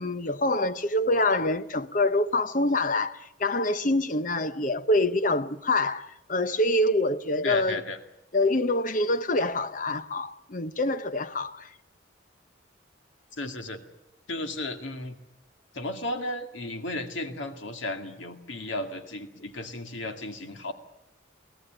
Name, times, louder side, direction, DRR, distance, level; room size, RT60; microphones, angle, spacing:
voice 1, 0.0-7.8 8.3-11.7, left 2 dB, 40° left, 0.9 m, -26 dB
voice 2, 7.4-8.0 13.4-13.8 14.3-15.2 15.7-20.7, left 2 dB, 75° left, 2.2 m, -34 dB
23.0 x 17.0 x 9.0 m
head